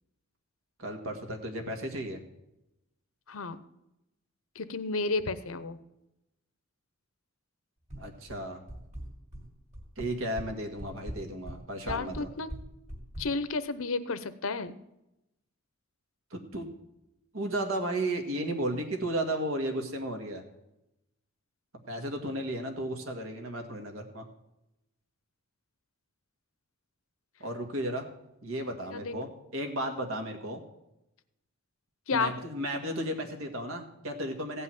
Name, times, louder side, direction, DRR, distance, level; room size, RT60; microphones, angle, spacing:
voice 1, 0.8-2.2 8.0-8.6 10.0-12.3 16.3-16.7 17.3-20.4 21.9-24.3 27.4-28.1 28.4-30.6 32.1-34.6, right 1 dB, 70° right, 4 dB, 2.0 m, -34 dB
voice 2, 3.3-3.6 4.5-5.8 11.9-12.5 13.2-14.7 28.9-29.1 32.1-32.4, left 4 dB, 75° left, 13 dB, 0.8 m, -32 dB
sound 1, 7.9-8.4 8.7-9.4 9.7-10.5 10.8-13.3, right 1 dB, 35° right, 2.9 m, -40 dB
16.0 x 5.6 x 9.2 m, 0.89 s
head